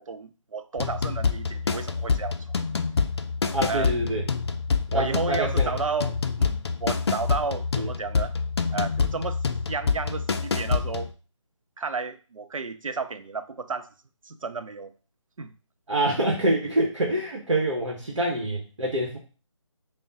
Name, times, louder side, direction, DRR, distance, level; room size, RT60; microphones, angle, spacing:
voice 1, 0.0-2.5 3.7-3.9 4.9-8.4 8.7-9.4 9.7-11.1 11.8-13.9 14.2-14.9 15.4-15.5, right 4 dB, 90° right, 0.5 m, -32 dB
sound 1, 0.8-11.1, left 5 dB, 55° left, 0.4 m, -27 dB
voice 2, 3.5-4.2 4.9-5.7 7.8-7.9 15.9-19.2, right 1 dB, 65° right, 1.0 m, -26 dB
3.4 x 2.1 x 4.0 m
figure-of-eight pair, 160°, 17 cm